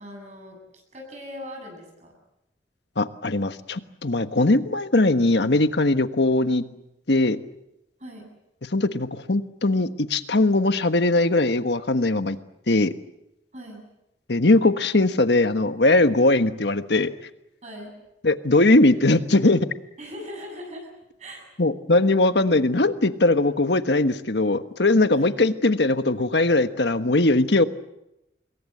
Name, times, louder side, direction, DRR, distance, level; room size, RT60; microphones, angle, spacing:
voice 1, 0.0-2.1 8.0-8.2 13.5-13.8 17.6-17.9 20.0-20.9 21.2-21.5 25.1-25.3, equal, 40° right, 2 dB, 7.5 m, -40 dB
voice 2, 3.0-6.6 7.1-7.4 8.7-12.4 12.7-12.9 14.3-17.1 18.2-19.7 21.6-27.6, left 2 dB, 70° left, 10 dB, 1.3 m, -20 dB
26.5 x 22.0 x 7.9 m, 0.87 s
head